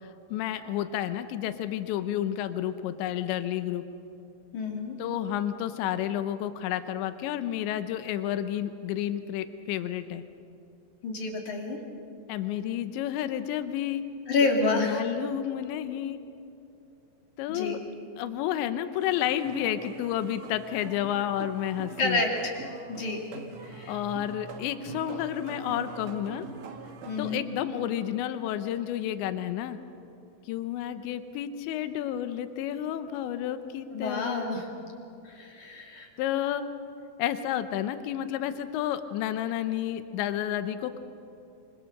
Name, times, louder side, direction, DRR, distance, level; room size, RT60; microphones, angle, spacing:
voice 1, 0.3-3.8 5.0-10.2 12.3-14.0 14.6-16.2 17.4-17.8 18.2-22.2 23.9-26.5 27.2-29.8 30.5-34.6 36.2-36.6 37.2-41.0, left 11 dB, 85° left, 10 dB, 3.2 m, -31 dB
voice 2, 4.5-5.0 11.0-11.8 14.3-15.1 17.5-17.8 22.0-22.5 22.9-23.2 23.6-24.0 27.1-27.4 33.9-34.7 35.2-36.1, left 3 dB, 50° left, 1 dB, 3.5 m, -29 dB
sound 1, 19.0-27.4, right 5 dB, 60° right, 2.4 m, -44 dB
26.0 x 25.5 x 6.6 m, 2.7 s
omnidirectional pair, 5.1 m